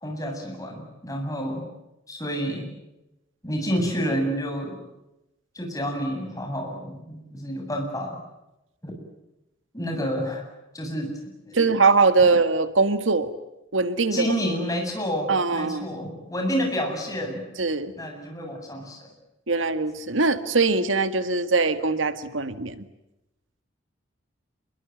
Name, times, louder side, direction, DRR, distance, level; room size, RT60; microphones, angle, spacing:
voice 1, 0.0-1.6 2.1-2.7 3.4-4.8 5.5-8.2 8.8-8.9 9.7-10.4 10.7-11.1 11.5-11.7 14.1-17.5 18.0-19.1 19.6-19.7, equal, 20° left, 2 dB, 8.0 m, -29 dB
voice 2, 11.5-13.3 13.7-14.3 15.3-15.9 17.6-17.9 19.5-22.8, right 4 dB, 85° right, 11 dB, 1.8 m, -22 dB
28.0 x 22.5 x 9.3 m, 0.94 s
head